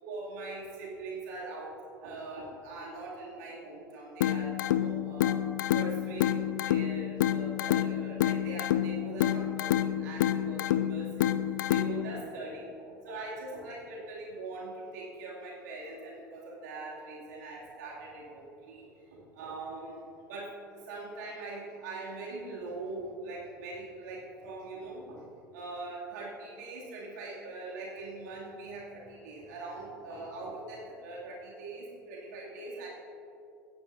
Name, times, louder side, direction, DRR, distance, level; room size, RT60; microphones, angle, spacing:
voice 1, 0.0-1.7 2.0-5.4 5.7-12.6 13.0-18.8 19.1-25.2 25.5-32.9, right 2 dB, 65° right, -4 dB, 2.6 m, -42 dB
sound 1, 4.2-12.2, left 11 dB, 70° left, 0.5 m, -29 dB
18.0 x 10.5 x 2.7 m, 2.7 s
figure-of-eight pair, 80°, 10 cm